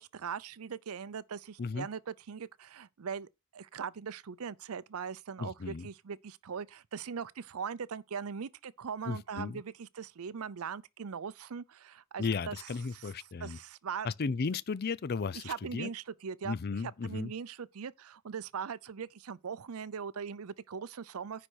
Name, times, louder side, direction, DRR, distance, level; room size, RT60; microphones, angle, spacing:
voice 1, 0.0-13.0 13.4-14.1 15.3-16.6 17.0-21.5, right 6 dB, 75° right, 0.5 m, -40 dB
voice 2, 5.4-5.9 9.1-9.6 12.2-13.6 14.0-15.9 16.4-17.3, left 4 dB, 45° left, 0.5 m, -35 dB
10.0 x 4.3 x 6.3 m
head